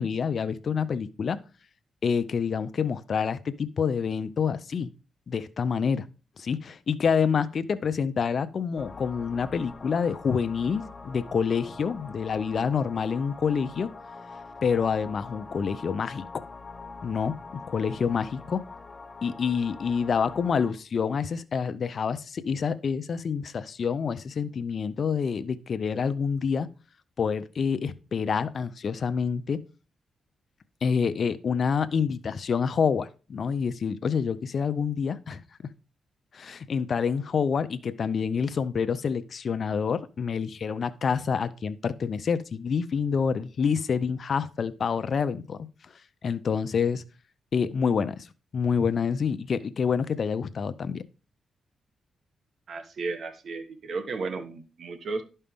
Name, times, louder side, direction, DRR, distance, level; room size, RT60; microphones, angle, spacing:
voice 1, 0.0-1.4 2.0-4.9 5.3-6.1 6.4-13.9 14.6-16.3 17.0-18.6 19.2-26.7 27.2-29.6 30.8-35.4 36.3-45.6 46.2-47.0 47.5-48.3 48.5-51.0, left 6 dB, 55° left, 0.6 m, -27 dB
sound 1, 8.8-20.7, left 4 dB, 30° left, 0.9 m, -44 dB
voice 2, 52.7-55.2, right 3 dB, 60° right, 1.3 m, -34 dB
11.0 x 5.5 x 3.6 m
cardioid pair, 85°, 0 cm